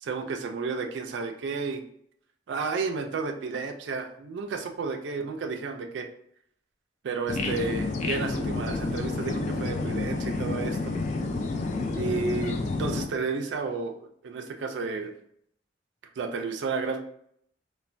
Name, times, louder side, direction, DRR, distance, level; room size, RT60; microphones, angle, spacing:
voice 1, 0.0-1.8 2.5-6.1 7.0-10.9 12.0-13.9 14.2-15.1 16.2-17.0, right 4 dB, 70° right, 4 dB, 0.4 m, -32 dB
sound 1, 7.3-13.1, left 3 dB, 40° left, 0.3 m, -29 dB
3.2 x 2.2 x 2.5 m, 0.68 s
head